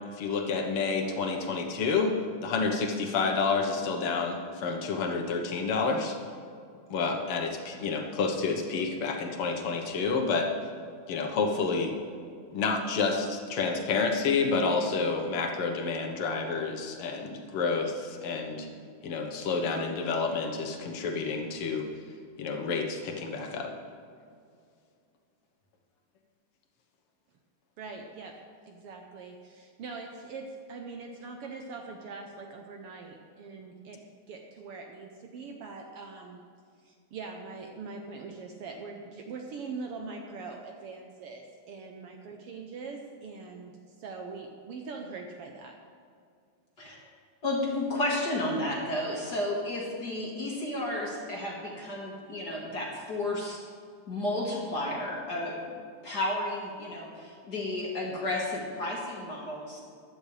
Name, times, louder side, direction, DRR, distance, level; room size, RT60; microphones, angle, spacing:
voice 1, 0.2-2.2 2.4-6.1 6.9-10.5 11.1-11.9 12.5-18.7 19.0-21.8 22.4-23.7, left 4 dB, 60° left, 3 dB, 1.7 m, -29 dB
voice 2, 27.8-28.4 28.7-34.0 34.3-36.4 36.8-45.8, right 4 dB, 75° right, 2 dB, 1.3 m, -42 dB
voice 3, 47.4-53.6 54.1-55.6 56.0-59.8, left 1 dB, 40° left, -3 dB, 1.7 m, -32 dB
15.0 x 11.5 x 3.3 m, 2.3 s
omnidirectional pair, 3.5 m